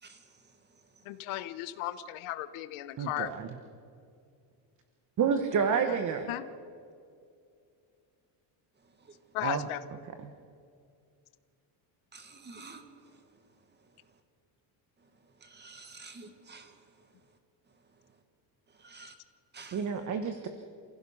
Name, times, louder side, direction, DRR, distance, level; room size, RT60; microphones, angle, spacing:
voice 1, 0.0-0.6 9.0-9.2 12.1-13.2 15.0-15.1 15.4-16.8 18.7-19.1 19.5-19.9, right 3 dB, 20° right, 1.8 m, -50 dB
voice 2, 1.0-3.3 6.3-6.4 9.3-9.8, left 14 dB, 80° left, 1.1 m, -35 dB
voice 3, 3.0-3.5 5.2-6.3 9.4-9.7 10.2-10.3 19.7-20.5, right 6 dB, 40° right, 1.2 m, -29 dB
29.0 x 16.0 x 5.6 m
cardioid pair, 155°, 48 cm